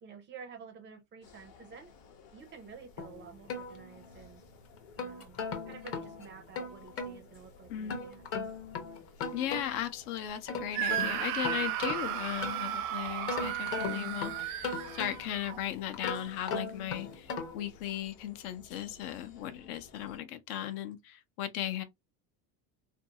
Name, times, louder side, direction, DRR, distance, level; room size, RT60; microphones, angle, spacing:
voice 1, 0.0-1.9 2.3-4.4 5.0-5.4 5.7-8.3, right 6 dB, 25° right, 0.4 m, -50 dB
sound 1, 1.2-20.2, left 4 dB, 50° left, 0.9 m, -57 dB
sound 2, 3.0-4.3 4.8-7.2 7.9-9.9 10.3-12.8 13.3-15.4 15.9-17.7, left 4 dB, 30° left, 0.6 m, -38 dB
voice 2, 7.7-8.0 9.3-21.8, left 11 dB, 75° left, 0.7 m, -37 dB
Screaming, 10.7-15.6, right 12 dB, 80° right, 0.6 m, -35 dB
2.6 x 2.3 x 2.7 m
supercardioid pair, 140°, 45 cm